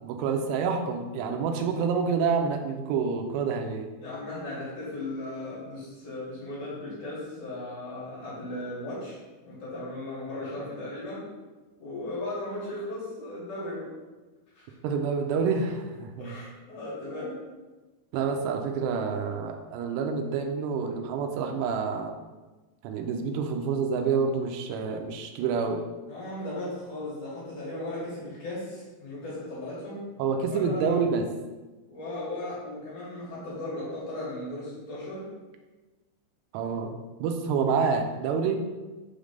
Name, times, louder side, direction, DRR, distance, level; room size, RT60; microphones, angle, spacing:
voice 1, 0.0-3.9 14.8-16.3 18.1-22.1 22.8-25.8 30.2-31.3 36.5-38.6, right 5 dB, 85° right, 4 dB, 2.8 m, -28 dB
voice 2, 4.0-9.2 9.4-11.3 11.8-13.9 14.5-14.7 16.2-17.4 26.1-30.1 30.5-31.0 31.9-35.3, left 1 dB, 55° left, -8 dB, 2.5 m, -36 dB
6.3 x 3.4 x 5.1 m, 1.2 s
omnidirectional pair, 4.9 m